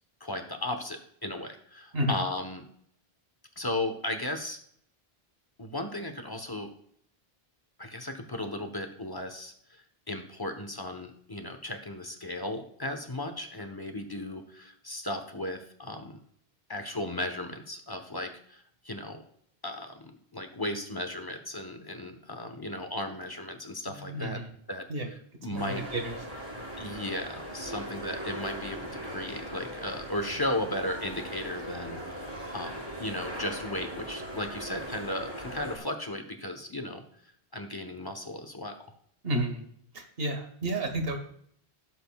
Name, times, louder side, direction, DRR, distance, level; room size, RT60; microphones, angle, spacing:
voice 1, 0.2-2.7 3.6-4.6 5.6-6.7 7.8-16.2 16.7-19.2 19.6-24.4 24.7-24.9 25.4-25.8 26.8-32.2 32.5-37.0 37.5-38.8, left 1 dB, 25° left, 5 dB, 1.0 m, -35 dB
voice 2, 23.9-24.5 24.9-25.1 25.5-26.2 39.2-39.7 39.9-41.2, right 1 dB, 70° right, 5 dB, 1.6 m, -31 dB
sound 1, 25.6-35.8, right 1 dB, 25° right, 2.5 m, -39 dB
16.0 x 7.7 x 2.3 m, 0.66 s
omnidirectional pair, 1.0 m